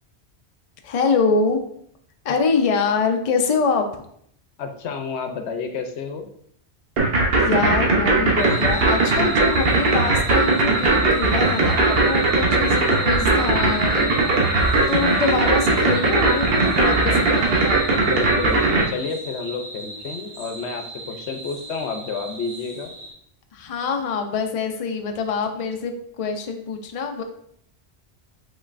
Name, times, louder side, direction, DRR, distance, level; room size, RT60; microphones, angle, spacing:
voice 1, 0.8-1.6 2.2-4.0 7.4-14.1 14.9-17.9 23.5-27.2, left 5 dB, 45° left, 4 dB, 0.5 m, -24 dB
voice 2, 4.6-6.3 14.2-14.6 18.1-22.9, left 5 dB, 80° left, 5 dB, 0.9 m, -30 dB
sound 1, 7.0-18.8, right 3 dB, 60° right, 1.1 m, -18 dB
sound 2, 8.4-23.1, right 2 dB, 80° right, 2.0 m, -35 dB
5.3 x 3.9 x 2.5 m, 0.67 s
omnidirectional pair, 1.1 m